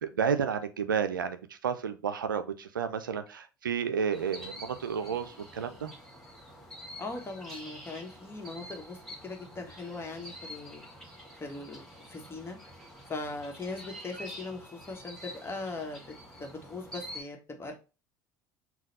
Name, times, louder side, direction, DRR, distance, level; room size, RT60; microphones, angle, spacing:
voice 1, 0.0-5.9, right 7 dB, 90° right, 10 dB, 0.4 m, -31 dB
sound 1, 4.1-17.2, equal, 5° left, 1.9 m, -47 dB
voice 2, 7.0-10.9 11.3-12.6 13.1-16.0 16.4-17.7, left 3 dB, 25° left, 4 dB, 1.2 m, -40 dB
4.0 x 2.3 x 4.0 m, 0.31 s
hypercardioid pair, 65°, 11 cm